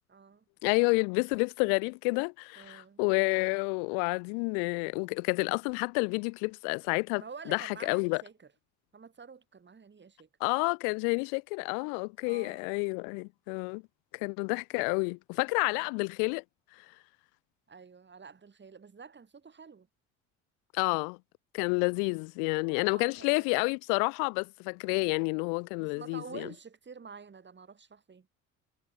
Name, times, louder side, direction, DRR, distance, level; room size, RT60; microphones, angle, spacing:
voice 1, 0.1-0.4 2.6-3.0 7.2-8.5 8.9-10.3 12.2-12.7 15.7-16.0 17.7-19.9 21.9-22.0 22.9-23.7 25.8-28.3, right 5 dB, 30° right, 3.8 m, -49 dB
voice 2, 0.6-7.2 7.5-8.2 10.4-13.8 14.1-16.4 16.8-16.9 20.7-21.2 21.5-26.5, left 40 dB or more, 70° left, 0.5 m, -29 dB
hypercardioid pair, 65°, 38 cm